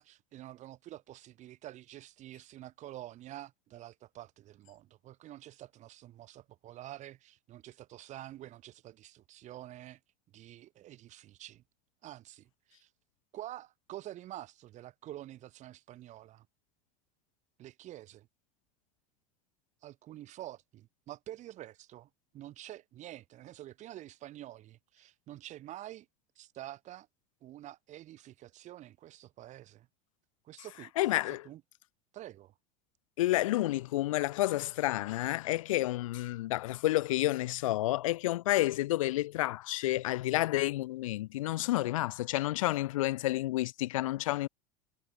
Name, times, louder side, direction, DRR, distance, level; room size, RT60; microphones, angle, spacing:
voice 1, 0.0-10.0 10.3-11.6 12.0-12.9 13.3-16.5 17.6-18.3 19.8-26.1 26.4-27.1 27.4-29.9 30.4-31.6 32.1-32.5, right 14 dB, 45° right, 5.9 m, -48 dB
voice 2, 31.0-31.5 33.2-44.5, left 16 dB, 85° left, 2.0 m, -30 dB
supercardioid pair, 115°, 17 cm